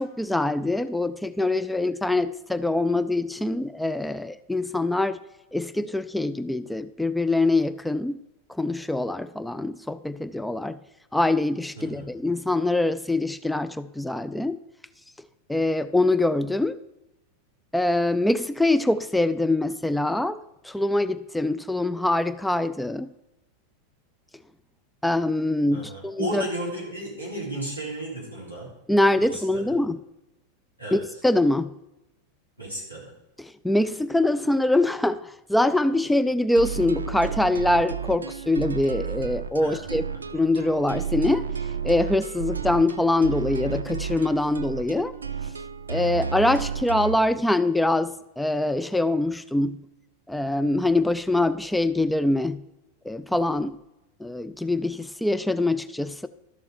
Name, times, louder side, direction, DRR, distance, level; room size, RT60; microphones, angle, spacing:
voice 1, 0.0-5.2 5.5-8.2 8.6-10.8 11.1-14.6 15.5-16.8 17.7-20.4 20.6-23.1 25.0-26.4 28.9-30.0 30.9-31.7 33.4-40.0 40.3-41.5 41.8-45.1 45.9-49.8 50.3-52.6 53.1-53.8 54.2-56.3, left 2 dB, 5° left, 14 dB, 0.3 m, -24 dB
voice 2, 11.8-12.1 25.7-28.7 29.2-29.8 30.8-31.0 32.6-33.1 39.6-40.2, right 1 dB, 90° left, -4 dB, 3.9 m, -34 dB
sound 1, 36.6-47.2, right 6 dB, 75° right, 0.4 m, -32 dB
12.0 x 6.9 x 4.8 m, 0.93 s
figure-of-eight pair, 90°, 0 cm